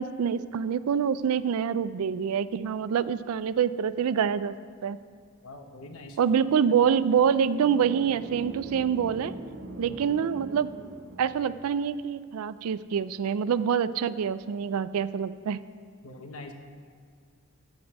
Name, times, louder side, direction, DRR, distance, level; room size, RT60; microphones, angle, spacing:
voice 1, 0.0-4.5 4.8-5.0 6.2-9.3 9.8-10.7 11.2-15.6, right 7 dB, 75° right, 15 dB, 0.4 m, -26 dB
voice 2, 5.4-6.2 9.8-10.0 16.0-16.5, left 2 dB, 80° left, 4 dB, 1.2 m, -43 dB
sound 1, 6.9-11.8, right 2 dB, 55° right, 0.9 m, -42 dB
13.0 x 5.3 x 8.1 m, 2.2 s
head